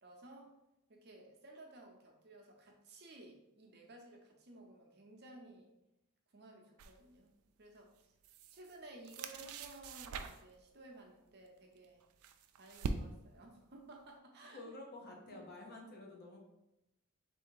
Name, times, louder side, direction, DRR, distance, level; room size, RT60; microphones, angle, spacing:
voice 1, 0.0-0.5 0.9-5.8 6.3-7.3 7.6-8.1 8.5-12.0 12.6-14.7 15.3-15.5, right 2 dB, 45° right, 1 dB, 0.7 m, -56 dB
sound 1, 6.8-7.0 8.0-8.8 9.0-10.6 11.8-13.4, right 4 dB, 70° right, 0.3 m, -43 dB
voice 2, 14.5-16.4, left 2 dB, 45° left, 0 dB, 0.8 m, -50 dB
3.6 x 2.7 x 4.5 m, 0.89 s
head